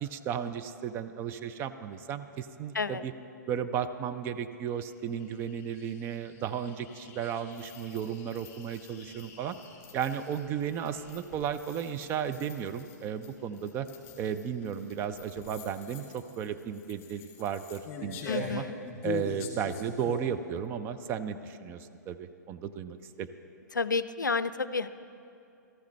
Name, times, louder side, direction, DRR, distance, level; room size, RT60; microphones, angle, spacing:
voice 1, 0.0-3.1 3.5-9.6 9.9-13.9 14.2-18.6 19.0-23.3, right 8 dB, 25° right, 9 dB, 0.4 m, -34 dB
sound 1, 4.9-20.3, left 4 dB, 25° left, 2.3 m, -44 dB
voice 2, 18.3-18.8 23.7-24.9, left 4 dB, 80° left, 14 dB, 0.4 m, -30 dB
16.5 x 14.0 x 3.2 m, 2.6 s
figure-of-eight pair, 115°, 10 cm